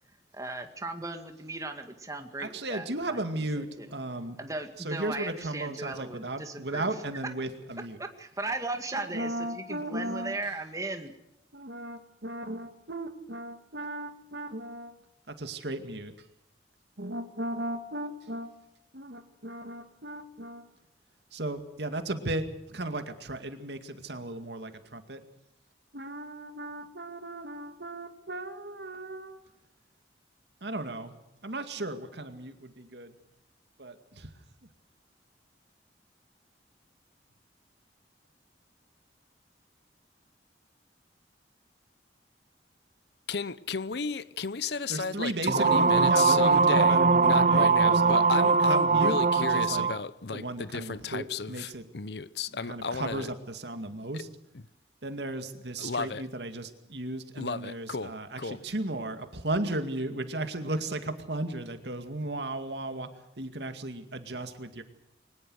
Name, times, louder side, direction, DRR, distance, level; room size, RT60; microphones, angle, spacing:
voice 1, 0.3-3.2 3.6-3.9 4.4-6.9 8.0-11.1, right 2 dB, 20° right, 2.0 m, -37 dB
voice 2, 2.4-4.4 4.8-8.0 8.9-10.4 11.5-15.0 15.3-16.1 17.0-18.5 18.9-20.7 21.3-22.4 22.7-25.2 25.9-29.4 30.6-31.1 31.4-33.1 33.8-34.3 44.9-49.9 50.3-51.9 52.7-54.3 55.0-63.1 63.4-64.8, right 2 dB, 70° right, 2.3 m, -36 dB
voice 3, 43.3-53.3 54.1-54.2 55.8-56.2 57.4-58.6, left 4 dB, 70° left, 0.8 m, -34 dB
sound 1, 45.5-50.0, right 4 dB, 45° right, 0.7 m, -21 dB
22.5 x 20.0 x 6.4 m
head